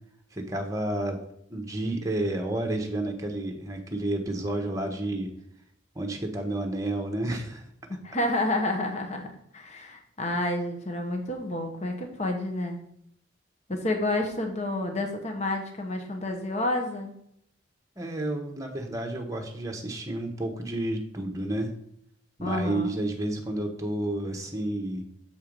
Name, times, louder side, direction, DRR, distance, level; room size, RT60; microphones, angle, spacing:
voice 1, 0.3-1.2 1.5-5.3 5.9-7.7 18.0-21.7 22.4-25.0, right 1 dB, 15° right, 2 dB, 1.0 m, -30 dB
voice 2, 8.0-9.3 9.5-12.8 13.7-17.1 22.4-22.9, left 1 dB, 35° left, 4 dB, 1.0 m, -29 dB
7.1 x 4.5 x 5.2 m, 0.71 s
head